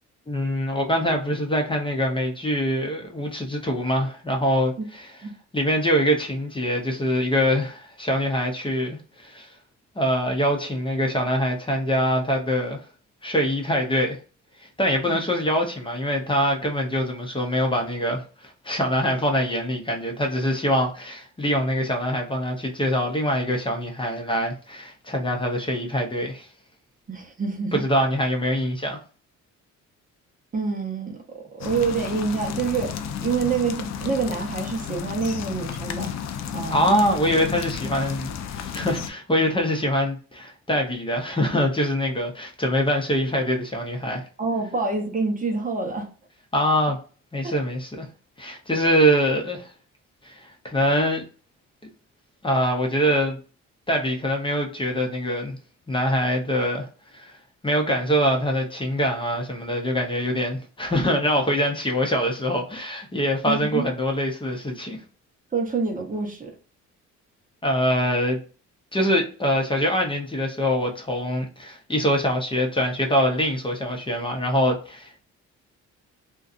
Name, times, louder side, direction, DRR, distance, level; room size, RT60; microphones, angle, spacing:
voice 1, 0.3-5.1 5.5-9.5 10.0-12.8 13.2-14.2 14.6-26.5 27.7-29.0 36.7-44.3 46.5-47.0 47.3-48.1 48.4-49.7 50.2-51.2 52.4-53.4 53.9-55.6 55.9-56.9 57.1-57.4 57.6-65.0 67.6-68.4 68.9-75.2, equal, 15° left, 0.7 m, -24 dB
voice 2, 27.1-27.8 30.5-32.9 33.2-36.9 44.4-46.1 47.4-47.5 63.4-63.9 65.5-66.5, right 4 dB, 25° right, 0.7 m, -27 dB
sound 1, 31.6-39.1, left 8 dB, 60° left, 0.5 m, -33 dB
2.7 x 2.3 x 2.4 m
cardioid pair, 90°, 30 cm